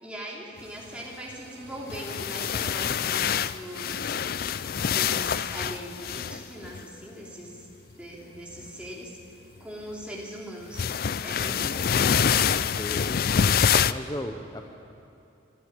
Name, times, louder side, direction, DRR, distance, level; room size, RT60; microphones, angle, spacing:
voice 1, 0.0-4.3 4.9-7.7 8.0-9.2 9.6-10.8 11.2-12.3, equal, 5° right, -3 dB, 3.1 m, -40 dB
sound 1, 0.6-14.1, right 2 dB, 55° right, 2.9 m, -56 dB
sound 2, 1.8-6.8 8.6-8.8 10.7-13.9, left 7 dB, 50° left, 0.4 m, -26 dB
voice 2, 12.7-13.2 13.9-14.6, left 1 dB, 20° left, 3 dB, 0.8 m, -35 dB
25.0 x 12.5 x 9.0 m, 2.8 s
head